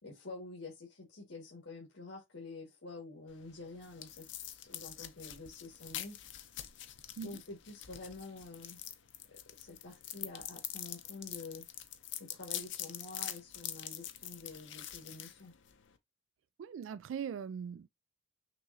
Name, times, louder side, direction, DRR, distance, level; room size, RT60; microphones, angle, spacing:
voice 1, 0.0-6.1 7.2-8.8 9.5-11.6 12.2-15.5, left 3 dB, 90° left, 1.8 m, -48 dB
sound 1, 3.3-16.0, left 12 dB, 70° left, 0.7 m, -45 dB
voice 2, 16.6-17.9, right 7 dB, 80° right, 0.3 m, -40 dB
5.9 x 3.0 x 2.7 m
head